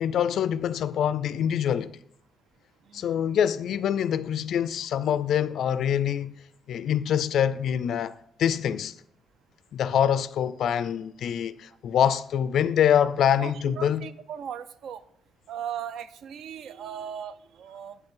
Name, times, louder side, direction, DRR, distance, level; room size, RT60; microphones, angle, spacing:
voice 1, 0.0-1.9 2.9-6.3 6.7-8.9 9.7-14.1, left 9 dB, 60° left, 0.3 m, -25 dB
voice 2, 13.4-15.0 15.5-18.0, right 9 dB, 60° right, 0.4 m, -38 dB
7.9 x 7.8 x 3.7 m
cardioid pair, 175°, 0 cm